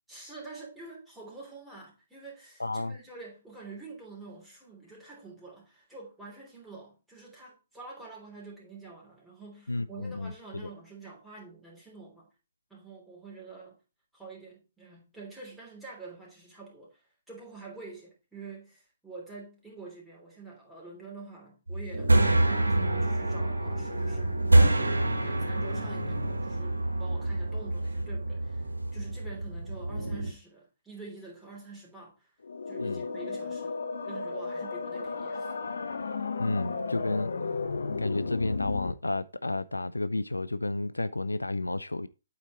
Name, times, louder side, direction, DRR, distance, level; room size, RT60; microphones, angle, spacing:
voice 1, 0.1-12.3 12.7-13.8 14.1-22.1 22.6-32.3 32.7-33.8 34.0-35.6, right 3 dB, 5° right, 3.1 m, -47 dB
voice 2, 2.6-3.0 9.7-10.3 32.8-33.0 36.4-37.3 38.0-42.1, left 2 dB, 90° left, 0.4 m, -31 dB
sound 1, 21.7-30.3, right 1 dB, 85° right, 1.2 m, -26 dB
sound 2, 32.4-38.9, left 4 dB, 70° left, 0.9 m, -34 dB
8.4 x 4.5 x 4.2 m
figure-of-eight pair, 130°, 0 cm